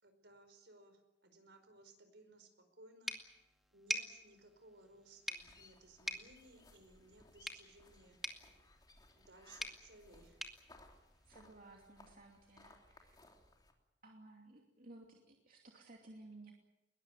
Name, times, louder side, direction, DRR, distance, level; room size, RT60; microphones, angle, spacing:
voice 1, 0.0-3.1 3.7-8.4 9.1-10.4, right 2 dB, 70° right, 8 dB, 5.0 m, -61 dB
sound 1, 3.1-11.7, equal, ahead, 2.2 m, -47 dB
sound 2, 5.4-13.7, left 2 dB, 25° left, 3.4 m, -64 dB
voice 2, 11.3-13.2 14.0-16.5, right 2 dB, 50° right, 1 dB, 2.7 m, -57 dB
21.5 x 20.5 x 9.3 m, 0.98 s
head